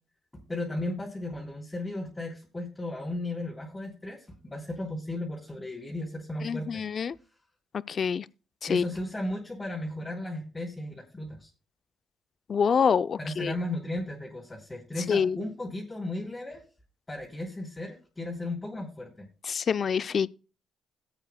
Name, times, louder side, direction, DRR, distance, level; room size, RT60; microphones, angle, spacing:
voice 1, 0.3-6.8 8.7-11.5 13.2-16.6 17.1-19.3, left 1 dB, 15° left, 3.2 m, -35 dB
voice 2, 6.4-7.2 7.9-8.3 8.7-8.9 12.5-13.5 15.1-15.4 19.4-20.3, left 6 dB, 50° left, 0.4 m, -26 dB
18.5 x 8.3 x 2.2 m
cardioid pair, 90°, 0 cm